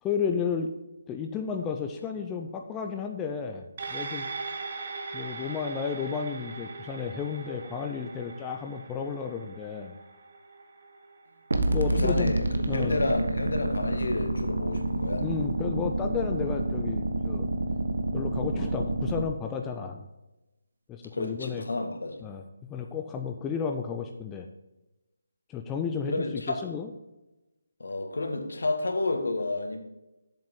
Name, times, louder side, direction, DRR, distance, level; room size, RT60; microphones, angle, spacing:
voice 1, 0.0-0.7 1.1-4.3 5.1-9.9 11.7-12.3 12.7-13.0 15.2-17.5 18.1-20.0 20.9-21.6 22.2-24.5 25.5-26.1 26.6-26.9, left 6 dB, 10° left, 3 dB, 0.3 m, -32 dB
sound 1, 3.8-12.5 12.9-13.0, right 4 dB, 35° right, 1.0 m, -40 dB
sound 2, 11.5-19.3, right 1 dB, 85° right, 1.2 m, -28 dB
voice 2, 11.9-15.3 21.1-22.2 26.1-26.6 27.8-29.8, left 2 dB, 75° left, 4 dB, 1.8 m, -30 dB
7.5 x 7.4 x 3.7 m, 0.98 s
hypercardioid pair, 175°, 0 cm